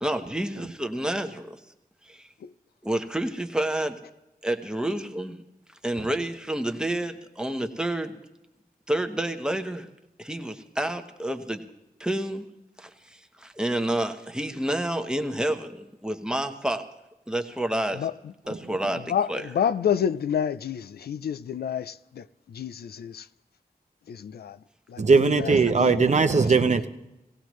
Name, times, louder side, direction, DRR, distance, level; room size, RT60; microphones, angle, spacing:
voice 1, 0.0-1.6 2.1-2.3 2.8-4.0 4.4-5.4 5.8-8.2 8.9-9.9 10.2-11.6 12.0-12.4 12.8-16.8 17.3-18.1 18.5-19.5, right 1 dB, 5° right, 1.0 m, -29 dB
voice 2, 19.1-23.2 24.1-24.6 24.9-25.0 25.3-26.1, left 8 dB, 80° left, 0.4 m, -29 dB
voice 3, 25.0-26.9, right 4 dB, 50° right, 0.7 m, -20 dB
17.5 x 16.0 x 3.1 m
wide cardioid pair, 90°, 16 cm